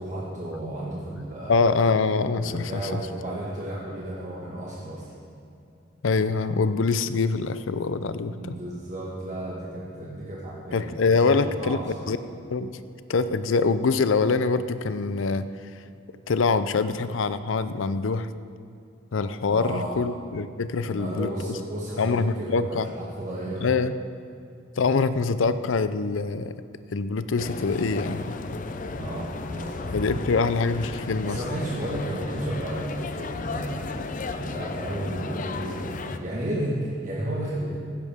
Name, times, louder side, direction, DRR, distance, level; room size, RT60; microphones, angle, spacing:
voice 1, 0.0-1.6 2.4-5.1 8.2-12.1 19.5-20.0 20.8-23.7 28.9-30.4 31.2-33.8 34.3-37.8, right 1 dB, 40° right, -6 dB, 1.6 m, -33 dB
voice 2, 1.5-3.0 6.0-8.6 10.7-11.8 12.1-12.2 12.5-12.7 13.1-15.5 16.3-18.3 19.1-21.5 22.0-22.9 23.6-23.9 24.8-26.5 26.9-28.3 29.9-31.4, left 4 dB, 85° left, 13 dB, 0.5 m, -24 dB
sound 1, 27.4-36.2, left 3 dB, 45° left, 0.6 m, -34 dB
16.0 x 10.5 x 3.6 m, 2.5 s
head